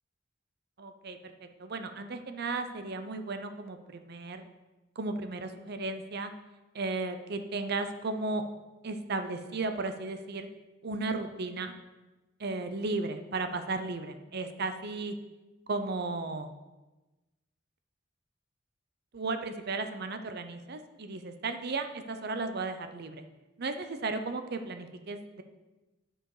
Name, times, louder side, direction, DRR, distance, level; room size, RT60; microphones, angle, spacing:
voice 1, 0.8-4.4 5.0-6.3 6.7-8.4 8.8-10.5 10.8-11.7 12.4-15.2 15.7-16.5 19.1-23.2 23.6-25.4, right 3 dB, 55° right, 8 dB, 0.7 m, -35 dB
11.5 x 5.0 x 4.9 m, 1.1 s
head